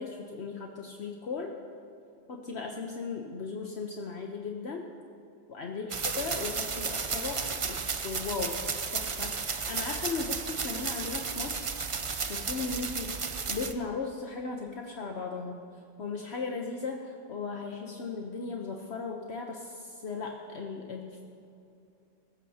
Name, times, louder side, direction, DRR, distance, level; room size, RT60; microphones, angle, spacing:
voice 1, 0.0-1.5 2.3-4.8 5.5-7.8 8.0-8.6 8.9-11.7 12.0-13.1 13.5-15.6 16.0-21.2, left 4 dB, 65° left, 1 dB, 1.2 m, -37 dB
sound 1, 5.9-13.7, right 5 dB, 35° right, 0.5 m, -33 dB
22.5 x 14.0 x 2.8 m, 2.6 s
omnidirectional pair, 1.2 m